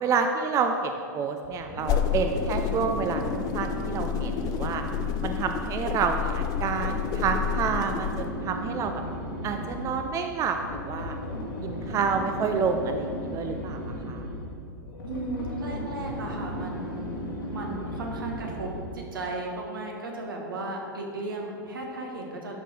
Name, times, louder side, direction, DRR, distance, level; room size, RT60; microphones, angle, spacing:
voice 1, 0.0-4.8 5.2-9.0 9.4-11.2 11.6-14.3, right 5 dB, 30° right, 6 dB, 0.5 m, -29 dB
sound 1, 1.4-19.0, left 1 dB, 75° left, 2.0 m, -35 dB
sound 2, 1.8-8.3, left 9 dB, 35° left, 0.5 m, -30 dB
voice 2, 15.0-17.1 17.5-22.6, right 2 dB, 80° right, 0 dB, 1.6 m, -35 dB
12.0 x 4.6 x 4.6 m, 2.5 s
hypercardioid pair, 95°, 11 cm